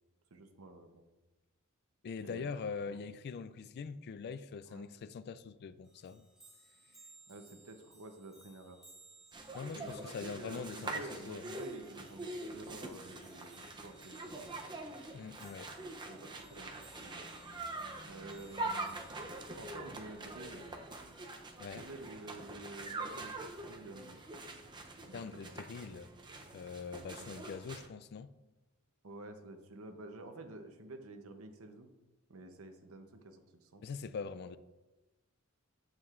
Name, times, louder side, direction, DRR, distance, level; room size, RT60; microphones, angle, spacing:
voice 1, 0.3-1.0 2.2-2.5 2.9-3.0 4.7-4.9 7.3-8.8 9.7-14.7 16.0-17.3 18.1-19.0 19.6-20.6 21.7-24.2 25.0-25.5 27.2-27.3 29.0-31.9 32.3-33.8, right 2 dB, 70° right, 0.8 m, -50 dB
voice 2, 2.0-6.3 9.5-11.5 15.1-15.7 21.6-21.8 25.1-26.1 26.5-28.3 33.8-34.6, left 5 dB, 50° left, 0.3 m, -43 dB
sound 1, 5.8-20.9 22.1-22.3, right 2 dB, 5° right, 2.8 m, -63 dB
sound 2, 9.3-27.9, right 2 dB, 20° right, 0.6 m, -44 dB
9.4 x 7.5 x 2.5 m
head